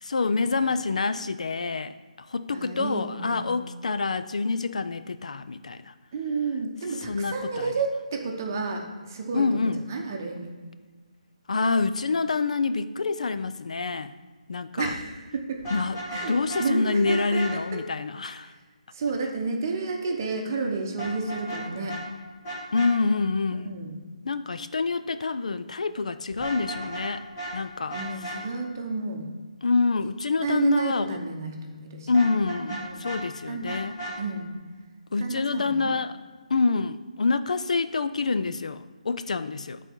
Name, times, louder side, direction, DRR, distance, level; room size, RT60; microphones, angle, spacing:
voice 1, 0.0-5.9 7.1-7.7 9.3-9.8 11.5-14.1 14.5-14.9 15.7-18.5 22.7-23.7 24.2-27.2 27.5-28.0 29.6-31.2 32.1-33.9 35.1-36.1 36.5-39.8, left 4 dB, 60° left, 12 dB, 0.4 m, -27 dB
voice 2, 2.5-3.6 6.1-10.5 14.8-15.7 16.1-17.6 18.4-18.6 18.9-22.0 23.6-24.0 27.9-29.3 30.4-32.2 32.8-33.1 33.5-33.8 34.2-34.5 35.2-35.9, right 3 dB, 25° right, 2 dB, 0.8 m, -31 dB
Vehicle horn car horn honking, 15.6-16.7 17.0-17.5 21.0-21.6 21.9-22.0 22.4-22.9 26.3-27.1 27.4-27.5 27.9-28.4 32.1-33.2 33.6-34.2, right 1 dB, 15° left, 1.5 m, -35 dB
8.9 x 4.1 x 4.5 m, 1.4 s
hypercardioid pair, 175°, 4 cm